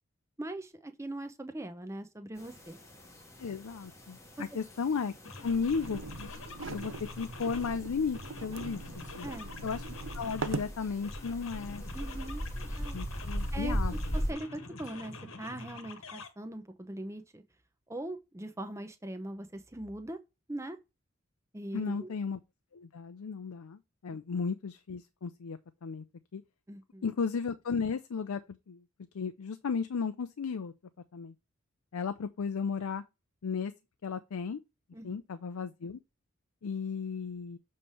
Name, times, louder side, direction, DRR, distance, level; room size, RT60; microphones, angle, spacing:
voice 1, 0.4-2.8 9.2-9.5 11.9-12.4 12.7-13.0 13.5-17.4 17.9-20.2 20.5-20.8 21.5-22.1 26.7-27.1 34.9-35.2, right 1 dB, 15° right, 0.7 m, -41 dB
sound 1, 2.4-14.3, equal, 15° left, 1.0 m, -40 dB
voice 2, 3.4-5.1 5.4-6.3 6.7-9.3 9.6-11.8 12.9-14.0 21.7-22.4 22.7-26.0 26.3-26.4 27.0-28.8 29.1-30.7 31.1-31.3 31.9-33.0 33.4-33.7 34.0-34.6 35.0-36.0 36.6-37.6, left 5 dB, 90° left, 0.5 m, -35 dB
sound 2, 4.7-4.9 5.2-7.8 8.1-10.7 11.0-13.6 13.9-16.3, left 3 dB, 70° left, 1.3 m, -46 dB
sound 3, 5.4-10.8, right 3 dB, 60° right, 0.5 m, -41 dB
7.0 x 3.2 x 5.5 m
head